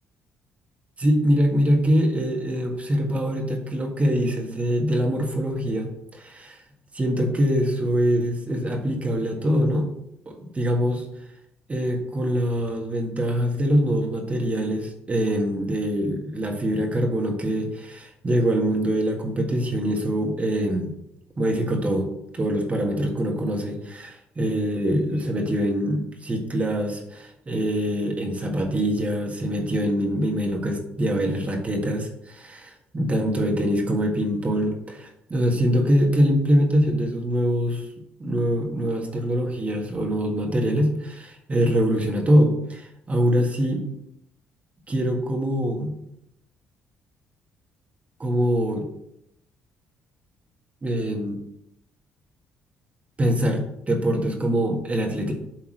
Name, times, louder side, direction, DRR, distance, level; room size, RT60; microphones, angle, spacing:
voice 1, 1.0-6.6 6.9-9.9 10.2-11.0 11.7-20.9 21.4-22.1 22.3-37.8 38.2-43.9 44.9-45.9 48.2-48.9 50.8-51.4 53.2-55.3, equal, 30° right, 1 dB, 1.7 m, -24 dB
7.6 x 3.6 x 6.4 m, 0.78 s
supercardioid pair, 65°, 5 cm